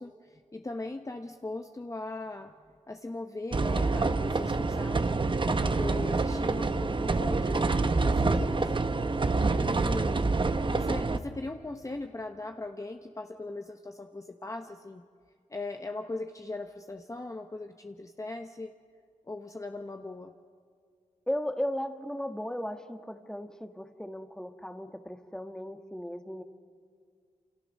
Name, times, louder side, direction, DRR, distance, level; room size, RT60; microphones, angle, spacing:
voice 1, 0.0-2.5 2.9-5.1 5.4-8.7 9.6-10.2 10.7-15.0 15.5-18.7 19.3-20.3, left 2 dB, 25° left, 5 dB, 1.0 m, -39 dB
sound 1, 3.5-11.2, right 3 dB, 40° right, 1.1 m, -27 dB
voice 2, 21.3-26.4, equal, 5° left, 7 dB, 1.6 m, -36 dB
27.5 x 27.0 x 6.5 m, 2.2 s
cardioid pair, 65°, 13 cm